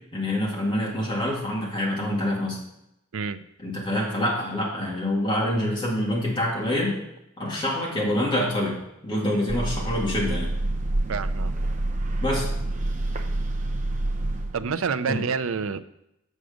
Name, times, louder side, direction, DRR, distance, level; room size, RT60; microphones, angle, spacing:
voice 1, 0.1-2.6 3.6-6.9 7.4-8.7 9.0-10.5 12.2-12.5 15.1-15.2, left 1 dB, 20° left, -4 dB, 2.3 m, -26 dB
sound 1, 9.5-14.8, right 2 dB, 35° right, 0.6 m, -27 dB
voice 2, 11.1-11.5 14.5-15.8, right 5 dB, 75° right, 11 dB, 0.5 m, -28 dB
8.0 x 6.4 x 5.0 m, 0.84 s
head